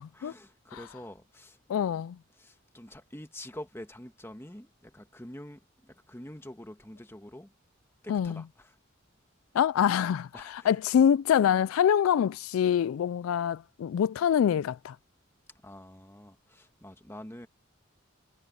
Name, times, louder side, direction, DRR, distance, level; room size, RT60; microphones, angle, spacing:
voice 1, 0.1-1.6 2.3-7.5 8.0-8.8 10.3-10.8 15.6-17.5, left 1 dB, 10° left, 1.6 m, -46 dB
voice 2, 1.7-2.2 8.1-8.3 9.5-15.0, left 8 dB, 90° left, 0.3 m, -25 dB
head